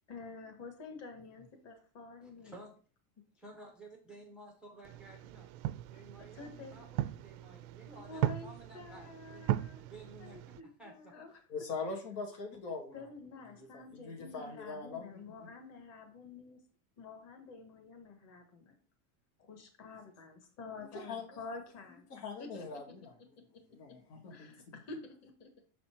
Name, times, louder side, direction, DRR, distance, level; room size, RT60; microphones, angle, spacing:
voice 1, 0.1-2.6 6.2-6.8 7.9-9.9 10.2-11.4 12.9-16.6 17.0-18.7 19.4-22.1 22.4-22.6 24.3-25.5, left 3 dB, 35° left, 5 dB, 1.5 m, -49 dB
voice 2, 2.2-2.7 3.4-5.5 5.9-9.4 9.8-10.4 10.8-11.1 13.6-13.7, right 2 dB, ahead, 0 dB, 0.4 m, -54 dB
sound 1, 4.8-10.6, right 14 dB, 65° right, 0.5 m, -38 dB
voice 3, 11.5-13.0 13.7-15.1 20.9-21.4 22.1-23.1 23.7-24.5, left 4 dB, 85° left, 2 dB, 2.1 m, -42 dB
6.4 x 4.2 x 4.4 m, 0.41 s
supercardioid pair, 155°, 46 cm